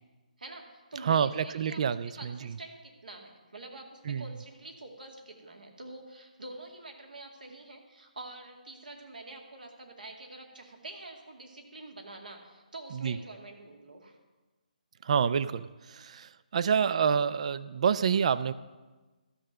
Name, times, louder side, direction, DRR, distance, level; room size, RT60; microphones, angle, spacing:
voice 1, 0.4-1.8 2.2-14.2, right 2 dB, 80° right, 2 dB, 2.2 m, -46 dB
voice 2, 1.0-2.5 4.1-4.3 12.9-13.2 15.0-18.5, right 7 dB, 50° right, 16 dB, 0.4 m, -28 dB
12.5 x 6.4 x 6.7 m, 1.2 s
figure-of-eight pair, 145°, 5 cm